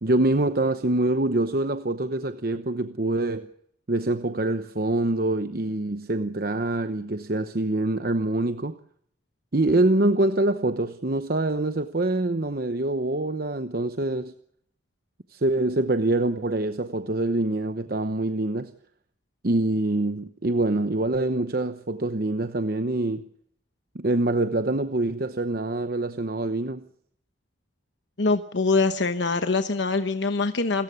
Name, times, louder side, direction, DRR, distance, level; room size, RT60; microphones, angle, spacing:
voice 1, 0.0-3.5 3.9-8.8 9.5-14.3 15.3-18.7 19.4-23.2 23.9-26.9, right 2 dB, 55° right, 0.9 m, -25 dB
voice 2, 28.2-30.8, left 3 dB, 80° left, 1.0 m, -24 dB
28.5 x 14.5 x 7.1 m
head